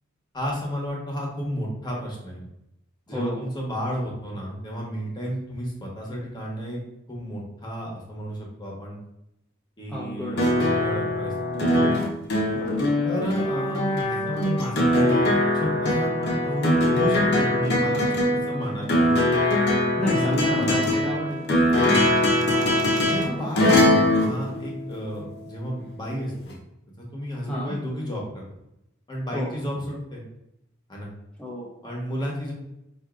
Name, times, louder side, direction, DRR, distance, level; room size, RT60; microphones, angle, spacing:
voice 1, 0.3-2.4 3.1-6.8 7.1-9.0 9.8-11.9 13.0-19.2 20.0-21.0 21.9-22.1 23.0-26.5 27.0-28.4 29.1-30.2 30.9-31.1 31.8-32.5, equal, 20° left, -3 dB, 0.9 m, -32 dB
voice 2, 3.1-3.4 9.9-10.7 12.5-13.0 20.0-21.5 27.4-27.8 29.3-29.5 31.4-31.7, left 1 dB, 5° left, -8 dB, 0.5 m, -30 dB
sound 1, 10.4-25.3 26.5-26.6, left 1 dB, 55° left, 0.7 m, -22 dB
4.8 x 2.6 x 2.4 m, 0.85 s
head